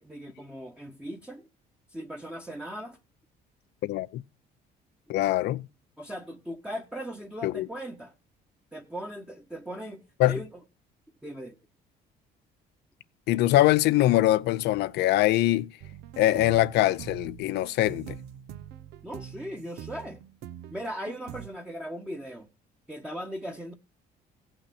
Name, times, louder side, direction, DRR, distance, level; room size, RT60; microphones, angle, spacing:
voice 1, 0.0-1.5 1.9-3.0 6.0-8.1 8.7-10.6 11.2-11.6 19.0-20.2 20.7-22.5 22.9-23.7, equal, 5° right, 1.1 m, -38 dB
voice 2, 3.8-4.2 5.1-5.7 7.4-7.7 10.2-10.4 13.3-15.7 16.2-18.2, left 15 dB, 80° left, 0.6 m, -23 dB
sound 1, 15.8-21.5, right 10 dB, 80° right, 0.9 m, -44 dB
16.5 x 5.9 x 4.2 m
cardioid pair, 110°, 17 cm